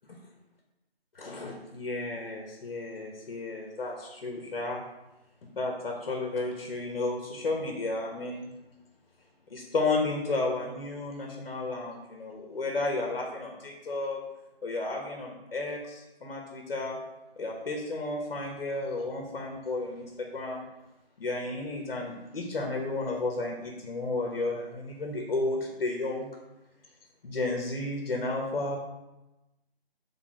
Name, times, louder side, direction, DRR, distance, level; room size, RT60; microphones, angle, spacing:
voice 1, 1.1-4.8 5.4-8.5 9.5-14.2 14.6-17.0 17.4-20.6 21.2-26.4 27.2-28.8, left 2 dB, 60° left, 1 dB, 1.1 m, -32 dB
6.0 x 3.6 x 4.7 m, 1.0 s
hypercardioid pair, 170°, 31 cm